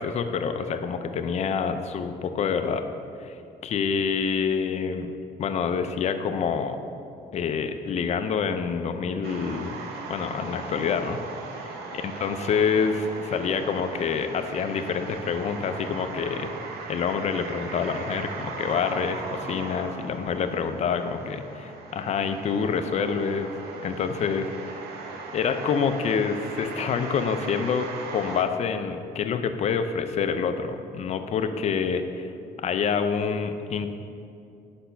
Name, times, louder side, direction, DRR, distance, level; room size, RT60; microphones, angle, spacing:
voice 1, 0.0-2.8 3.2-5.1 5.4-6.8 7.3-9.8 10.1-11.2 11.6-11.8 12.0-16.5 16.9-23.5 23.8-24.5 25.3-27.9 28.1-32.3 32.6-33.9, left 6 dB, 40° left, 8 dB, 0.4 m, -27 dB
sound 1, 9.2-28.4, right 4 dB, 70° right, 0.7 m, -38 dB
5.6 x 4.2 x 5.5 m, 2.5 s
cardioid pair, 110°, 17 cm